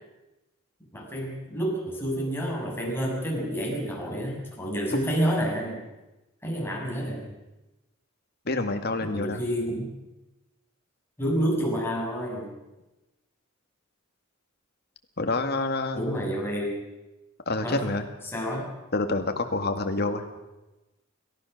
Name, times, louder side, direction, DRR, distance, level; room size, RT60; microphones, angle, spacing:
voice 1, 0.9-5.8 6.4-7.3 9.0-9.9 11.2-12.5 15.9-16.8 17.6-17.9 18.2-18.7, equal, 10° left, -2 dB, 6.5 m, -29 dB
voice 2, 8.5-9.4 15.2-16.1 17.5-18.0 18.9-20.2, left 2 dB, 50° left, 6 dB, 2.1 m, -27 dB
29.5 x 15.0 x 6.7 m, 1.0 s
head